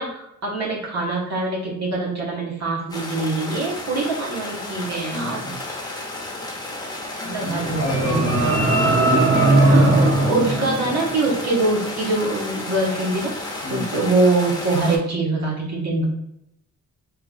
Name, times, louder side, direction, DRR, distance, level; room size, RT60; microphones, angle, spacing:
voice 1, 0.0-5.6 7.2-8.2 9.7-10.0 10.2-16.0, right 2 dB, 60° right, -3 dB, 1.3 m, -24 dB
sound 1, 2.9-15.0, left 2 dB, 10° left, 0.9 m, -32 dB
voice 2, 5.1-5.5 7.2-9.9 13.6-13.9, left 1 dB, 45° left, 0 dB, 1.0 m, -29 dB
sound 2, 7.4-11.6, right 2 dB, 40° right, 0.7 m, -19 dB
3.8 x 3.1 x 2.4 m, 0.79 s
cardioid pair, 110°, 30 cm